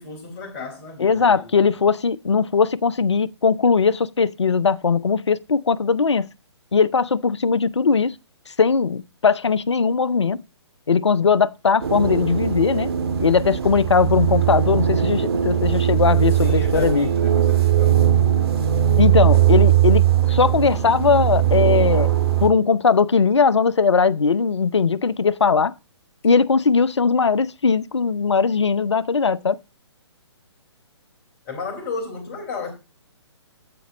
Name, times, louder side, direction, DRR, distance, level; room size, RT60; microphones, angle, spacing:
voice 1, 0.0-1.9 16.4-18.6 31.5-32.7, left 4 dB, 35° left, 4.4 m, -34 dB
voice 2, 1.0-6.3 6.7-8.2 8.6-10.4 10.9-12.9 13.2-17.1 19.0-22.1 22.4-25.7 26.2-29.6, left 5 dB, 75° left, 0.7 m, -19 dB
sound 1, 11.8-22.5, right 11 dB, 60° right, 2.3 m, -19 dB
13.5 x 5.3 x 5.9 m
figure-of-eight pair, 130°, 15 cm